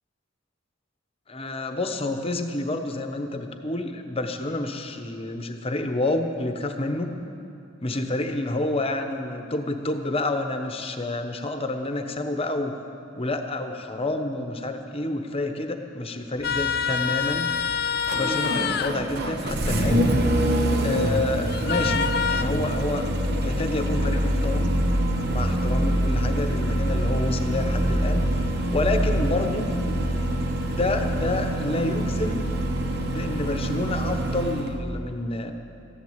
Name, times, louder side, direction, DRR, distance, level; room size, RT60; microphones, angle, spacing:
voice 1, 1.3-7.1 7.8-12.7 13.2-17.5 18.1-20.1 20.8-24.7 25.2-29.7 30.8-32.5 33.0-35.5, left 2 dB, 30° left, 6 dB, 1.0 m, -29 dB
sound 1, 16.4-18.9 21.5-22.4, left 7 dB, 55° left, 0.6 m, -26 dB
Engine starting, 16.4-34.8, right 1 dB, 55° right, 1.1 m, -25 dB
14.5 x 10.5 x 8.0 m, 2.7 s
head